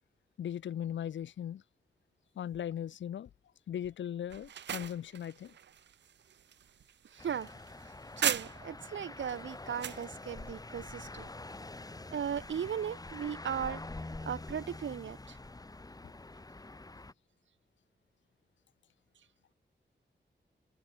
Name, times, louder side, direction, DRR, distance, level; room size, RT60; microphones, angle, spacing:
voice 1, 0.4-1.6 2.4-3.3 3.7-5.5, left 10 dB, 85° left, 0.5 m, -38 dB
sound 1, 4.3-8.9 9.3-10.1, right 9 dB, 70° right, 0.5 m, -38 dB
voice 2, 7.0-11.3 12.1-13.8 14.3-15.4, right 8 dB, 85° right, 0.9 m, -37 dB
sound 2, 7.2-17.1, left 2 dB, 20° left, 1.2 m, -46 dB
open air
wide cardioid pair, 110°, 19 cm